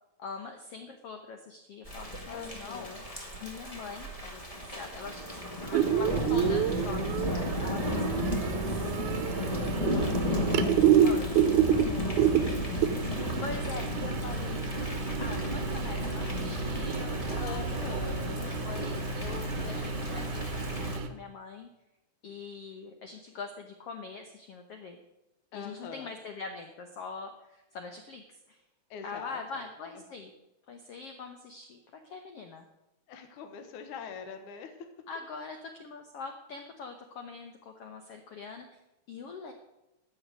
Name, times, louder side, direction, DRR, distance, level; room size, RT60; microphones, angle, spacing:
voice 1, 0.2-8.9 11.1-11.3 13.4-14.7 15.0-17.7 18.6-21.7 22.2-25.0 25.5-28.6 29.0-30.3 30.7-32.7 35.1-38.8 39.1-39.5, left 4 dB, 80° left, 5 dB, 1.3 m, -43 dB
Thunder / Rain, 1.8-21.0, equal, 35° left, 0.5 m, -34 dB
voice 2, 2.3-3.0 5.6-6.2 9.4-12.9 17.4-18.6 25.5-26.1 28.9-29.7 29.9-30.0 33.1-34.9, left 6 dB, 65° left, 7 dB, 2.6 m, -44 dB
sound 1, 5.7-21.1, right 8 dB, 70° right, 2.0 m, -29 dB
11.5 x 7.2 x 9.3 m, 0.93 s
omnidirectional pair, 4.1 m